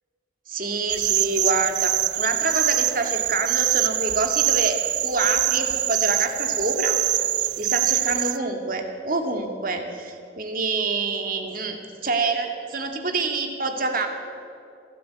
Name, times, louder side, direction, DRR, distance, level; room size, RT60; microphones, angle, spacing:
voice 1, 0.5-7.0 7.4-14.1, right 3 dB, 50° right, 4 dB, 2.3 m, -27 dB
sound 1, 0.9-8.4, right 14 dB, 65° right, 0.5 m, -24 dB
25.5 x 13.5 x 8.7 m, 2.5 s
head